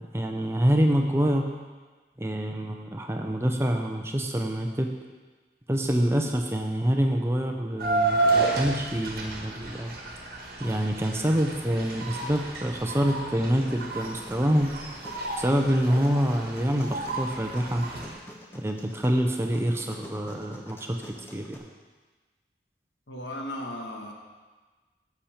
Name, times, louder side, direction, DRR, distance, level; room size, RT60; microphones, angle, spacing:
voice 1, 0.0-1.5 2.2-4.9 5.7-9.9 10.6-14.7 15.4-17.9 18.5-21.6, equal, 15° right, 3 dB, 0.6 m, -26 dB
sound 1, 7.8-18.1, right 3 dB, 55° right, 1.4 m, -31 dB
sound 2, 13.6-21.6, equal, 15° left, 0.9 m, -47 dB
voice 2, 23.1-24.1, left 1 dB, 85° left, 1 dB, 1.5 m, -36 dB
10.5 x 7.1 x 4.4 m, 1.3 s
head